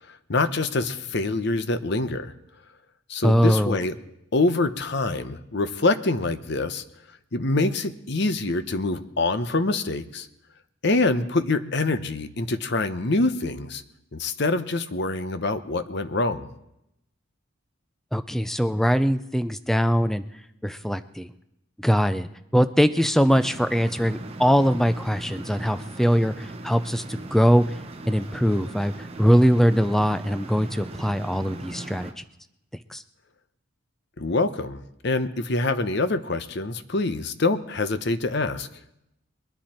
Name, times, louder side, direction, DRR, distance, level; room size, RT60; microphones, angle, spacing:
voice 1, 0.1-2.3 3.1-3.9 4.3-6.8 7.3-10.3 10.8-13.8 14.1-16.5 34.2-38.7, left 2 dB, 55° left, 11 dB, 0.8 m, -25 dB
voice 2, 3.2-3.8 18.1-20.2 20.6-21.3 21.8-27.6 28.1-28.9 29.2-32.2 32.9-33.0, equal, ahead, 11 dB, 0.4 m, -21 dB
sound 1, 23.3-32.1, right 2 dB, 30° right, 0.9 m, -39 dB
22.0 x 10.5 x 4.4 m, 0.84 s
head